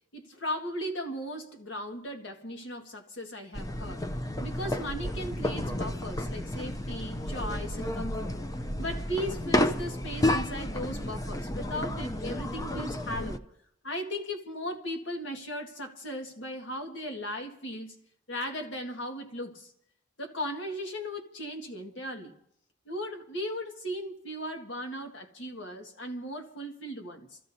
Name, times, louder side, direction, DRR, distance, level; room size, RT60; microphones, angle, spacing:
voice 1, 0.1-4.1 4.4-8.4 8.8-13.4 13.8-18.0 18.3-19.7 20.2-22.3 22.9-27.4, equal, 80° left, 1.9 m, -37 dB
sound 1, 3.5-13.4, left 1 dB, 20° left, 0.5 m, -31 dB
27.5 x 15.5 x 2.8 m
head